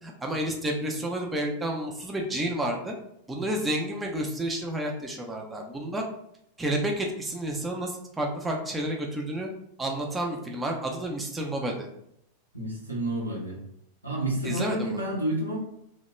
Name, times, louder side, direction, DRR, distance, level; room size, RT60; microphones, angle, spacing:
voice 1, 0.0-2.9 3.3-6.0 6.6-9.5 9.8-11.9 14.4-15.0, right 1 dB, 10° right, 0 dB, 0.4 m, -30 dB
voice 2, 12.5-13.6 14.0-15.6, right 1 dB, 85° right, -4 dB, 0.8 m, -29 dB
2.1 x 2.1 x 3.0 m, 0.75 s
figure-of-eight pair, 90°, 0 cm